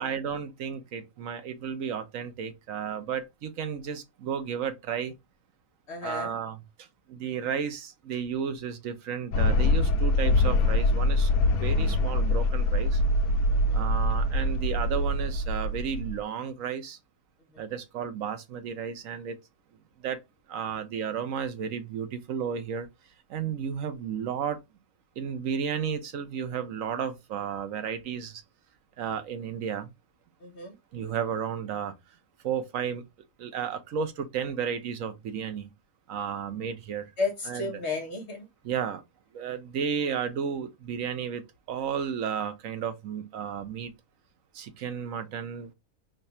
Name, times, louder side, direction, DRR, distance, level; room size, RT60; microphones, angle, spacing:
voice 1, 0.0-5.1 6.0-11.3 11.6-13.0 13.7-17.0 17.6-19.4 20.0-20.2 20.5-22.9 23.3-24.6 25.2-28.4 29.0-29.9 30.9-31.9 32.4-33.0 33.4-35.7 36.1-37.1 37.5-37.7 38.6-39.0 39.3-43.9 44.5-45.7, right 7 dB, 70° right, 1.0 m, -33 dB
voice 2, 5.9-6.3 13.5-13.9 17.5-17.7 30.4-30.7 37.2-38.5, left 3 dB, 50° left, 1.2 m, -33 dB
sound 1, 9.3-16.2, left 1 dB, 75° left, 1.1 m, -24 dB
3.2 x 2.4 x 4.1 m
omnidirectional pair, 1.6 m